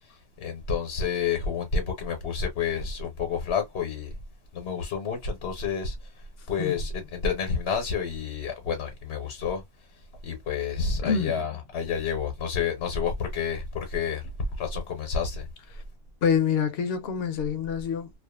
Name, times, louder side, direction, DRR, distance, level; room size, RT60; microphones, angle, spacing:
voice 1, 0.4-4.1 4.5-6.0 6.5-9.6 10.2-14.2 14.6-15.5, left 6 dB, 85° left, 1.1 m, -29 dB
voice 2, 11.0-11.4 15.7-15.8 16.2-18.1, left 7 dB, 70° left, 0.8 m, -26 dB
2.5 x 2.4 x 2.3 m
omnidirectional pair, 1.1 m